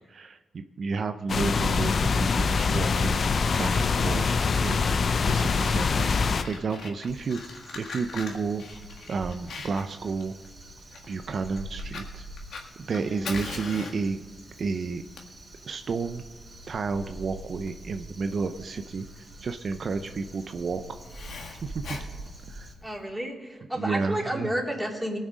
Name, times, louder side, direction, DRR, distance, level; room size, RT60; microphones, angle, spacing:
voice 1, 0.1-3.3 3.6-4.2 4.6-6.1 6.5-8.6 9.1-10.3 11.1-12.3 12.8-14.2 14.6-15.0 15.6-16.2 16.7-19.1 19.4-21.0 21.6-21.8 22.5-22.7 23.8-24.5, right 4 dB, 60° right, 8 dB, 0.5 m, -31 dB
sound 1, 1.3-6.4, left 5 dB, 60° left, 0.6 m, -24 dB
Fire, 5.3-23.0, left 4 dB, 80° left, 1.6 m, -42 dB
Crow, 7.1-22.7, right 1 dB, 35° right, 3.1 m, -45 dB
voice 2, 13.0-13.3 22.8-25.2, right 1 dB, 10° right, -1 dB, 3.1 m, -32 dB
19.0 x 6.4 x 5.1 m, 1.2 s
cardioid pair, 65°, 0 cm